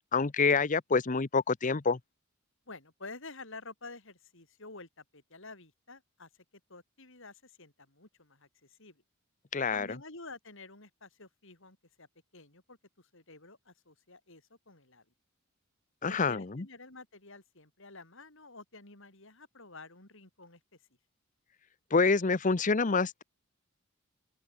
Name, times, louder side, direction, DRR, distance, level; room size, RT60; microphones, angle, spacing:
voice 1, 0.1-2.0 9.5-9.9 16.0-16.6 21.9-23.2, left 4 dB, 35° left, 0.7 m, -27 dB
voice 2, 2.7-6.4 6.7-9.0 9.7-12.1 12.3-15.1 16.0-20.6, left 3 dB, 65° left, 6.2 m, -50 dB
open air
head